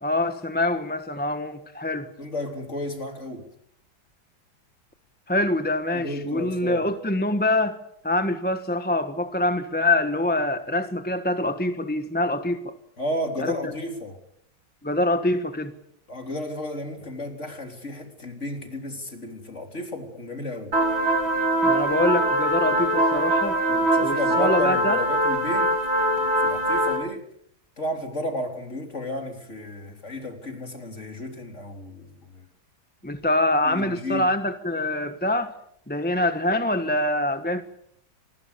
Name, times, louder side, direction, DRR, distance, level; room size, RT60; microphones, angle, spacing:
voice 1, 0.0-2.1 5.3-7.8 8.0-12.8 13.4-13.7 14.8-15.7 21.6-23.6 24.0-25.0 33.0-35.5 35.9-37.6, left 1 dB, 5° left, 0.9 m, -25 dB
voice 2, 2.2-3.5 5.9-6.9 13.0-14.2 16.1-20.7 23.7-25.8 26.4-27.3 27.8-32.4 33.6-34.3, left 1 dB, 35° left, 4.0 m, -32 dB
sound 1, 20.7-27.0, right 1 dB, 75° right, 6.2 m, -22 dB
27.0 x 20.5 x 7.0 m
omnidirectional pair, 2.2 m